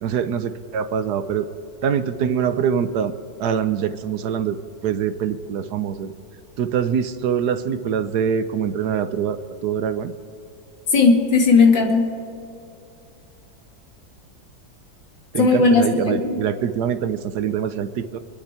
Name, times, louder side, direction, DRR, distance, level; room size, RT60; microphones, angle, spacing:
voice 1, 0.0-1.5 1.8-3.1 3.4-4.6 4.8-6.1 6.6-10.1 15.3-18.2, right 8 dB, 70° right, 11 dB, 1.2 m, -24 dB
voice 2, 10.9-12.1 15.4-16.4, left 4 dB, 85° left, 1 dB, 2.9 m, -16 dB
27.5 x 10.0 x 4.4 m, 2.7 s
omnidirectional pair, 2.0 m